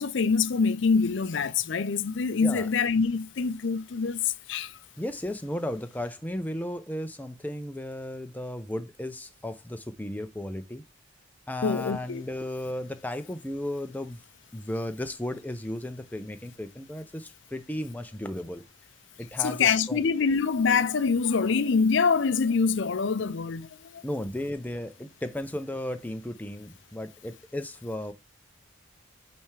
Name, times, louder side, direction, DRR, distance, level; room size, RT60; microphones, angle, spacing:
voice 1, 0.0-4.8 11.6-12.2 19.4-24.0, left 5 dB, 65° left, 0.5 m, -25 dB
voice 2, 5.0-10.8 11.5-14.2 14.5-18.6 19.2-20.0 24.0-28.1, left 1 dB, 10° left, 0.5 m, -35 dB
8.7 x 3.5 x 3.2 m
head